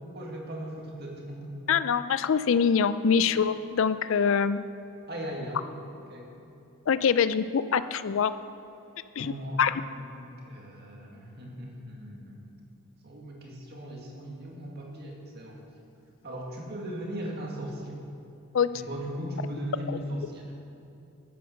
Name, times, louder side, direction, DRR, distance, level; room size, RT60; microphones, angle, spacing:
voice 1, 0.0-1.6 5.1-5.6 5.9-6.3 9.2-9.6 9.9-12.6 13.0-15.6 16.2-18.0 18.7-20.5, equal, 45° right, -1 dB, 2.1 m, -38 dB
voice 2, 1.7-4.6 6.9-8.3 9.2-9.3 9.6-9.8 18.5-18.7 19.9-20.0, left 6 dB, 60° left, 14 dB, 0.4 m, -24 dB
12.0 x 9.4 x 6.6 m, 2.8 s
head